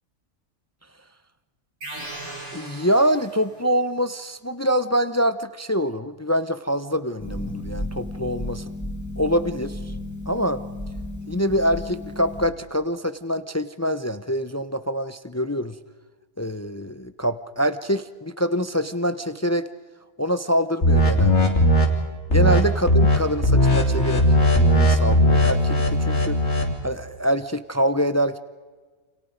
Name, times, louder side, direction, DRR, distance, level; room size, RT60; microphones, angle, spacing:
sound 1, 1.8-3.7, right 1 dB, 55° right, 3.6 m, -38 dB
voice 1, 2.5-8.7 9.2-9.9 10.3-10.6 11.3-15.7 16.4-19.7 20.2-21.6 22.3-24.3 24.6-26.4 26.8-28.4, equal, 25° left, 12 dB, 0.3 m, -25 dB
Harp, 7.2-12.5, left 1 dB, 10° left, 3.7 m, -33 dB
sound 2, 20.8-21.9 22.3-22.6 22.9-23.2 23.4-26.7, equal, 55° left, 3.1 m, -18 dB
29.0 x 27.0 x 5.1 m, 1.4 s
omnidirectional pair, 1.4 m